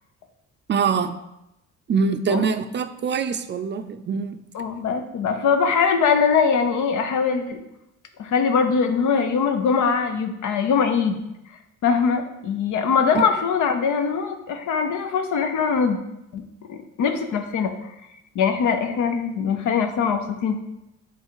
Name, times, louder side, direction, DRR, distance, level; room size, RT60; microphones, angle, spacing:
voice 1, 0.7-1.2 1.9-4.4, right 5 dB, 40° right, 9 dB, 0.4 m, -24 dB
voice 2, 4.5-7.6 8.2-11.2 11.8-16.0 16.3-16.4 16.7-17.7 18.3-20.6, left 6 dB, 75° left, 7 dB, 0.8 m, -22 dB
5.4 x 3.8 x 4.7 m, 0.89 s
cardioid pair, 90°, 30 cm